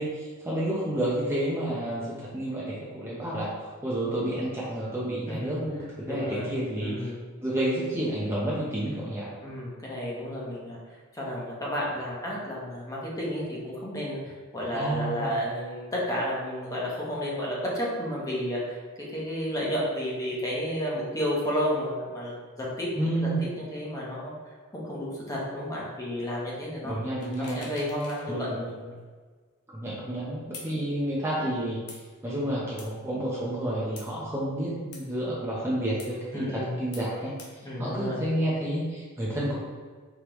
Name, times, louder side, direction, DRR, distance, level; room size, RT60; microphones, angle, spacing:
voice 1, 0.0-6.9 7.4-9.3 14.7-15.4 23.0-23.5 26.8-27.7 28.2-28.8 29.7-31.8 32.2-37.4 37.8-39.5, right 1 dB, 10° right, -7 dB, 0.7 m, -30 dB
voice 2, 6.1-7.2 9.4-10.8 11.1-23.3 23.6-27.0 27.4-28.5 36.3-36.7 37.6-38.2, equal, 15° left, -5 dB, 1.0 m, -32 dB
sound 1, 27.2-28.3 28.6-28.7 30.5-30.7 31.9-32.0 32.8-32.9 34.0-34.1 34.9-35.0 36.0-36.1 36.9-37.1 37.4-37.5, left 4 dB, 90° left, 0.9 m, -44 dB
4.7 x 3.3 x 3.1 m, 1.5 s
head